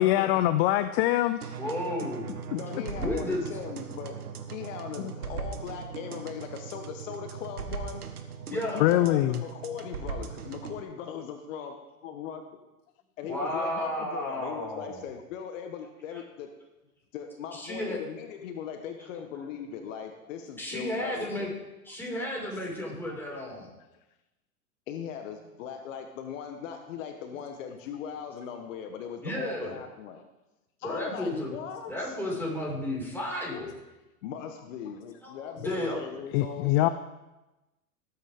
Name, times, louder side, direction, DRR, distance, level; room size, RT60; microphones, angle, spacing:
voice 1, 0.0-1.5 5.0-5.1 8.8-9.4 36.3-36.9, left 14 dB, 45° left, 13 dB, 0.5 m, -23 dB
sound 1, 1.4-10.8, right 6 dB, 85° right, 1.5 m, -39 dB
voice 2, 1.6-2.4 2.9-3.5 8.5-8.9 13.3-15.0 16.1-16.2 17.5-18.0 20.6-21.5 21.9-23.7 29.2-29.8 30.8-31.5 31.9-33.7 35.2-36.0, left 1 dB, 5° left, -4 dB, 5.3 m, -33 dB
voice 3, 2.5-4.2 4.5-8.0 8.5-11.7 12.0-12.4 13.2-16.5 17.1-21.5 24.9-30.2 30.8-32.4 33.5-33.7 34.2-36.9, left 8 dB, 60° left, 6 dB, 1.3 m, -39 dB
19.0 x 8.5 x 3.7 m, 1.0 s
hypercardioid pair, 105°, 44 cm